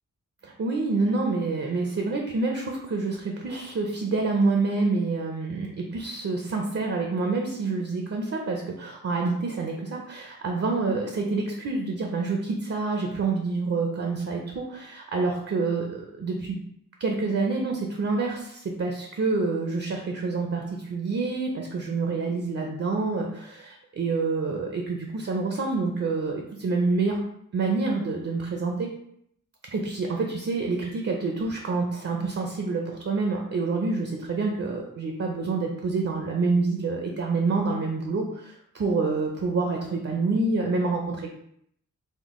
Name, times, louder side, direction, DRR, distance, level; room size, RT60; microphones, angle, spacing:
voice 1, 0.4-16.6 17.0-27.2 27.5-28.9 29.7-41.3, right 3 dB, 45° right, 1 dB, 0.5 m, -27 dB
3.7 x 2.2 x 3.6 m, 0.73 s
wide cardioid pair, 90°, 33 cm